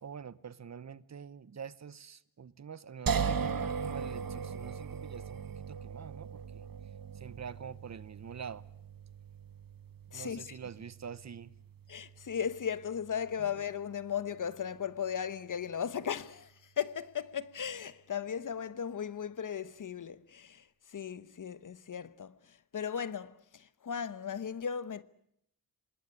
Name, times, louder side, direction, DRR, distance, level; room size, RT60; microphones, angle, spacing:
voice 1, 0.0-6.7 7.1-8.6 10.1-11.5, right 7 dB, 45° right, 1.0 m, -46 dB
sound 1, 3.1-16.1, right 6 dB, 60° right, 1.6 m, -40 dB
voice 2, 10.1-10.6 11.9-25.0, left 8 dB, 50° left, 1.1 m, -37 dB
26.0 x 20.0 x 9.8 m
wide cardioid pair, 120°, 39 cm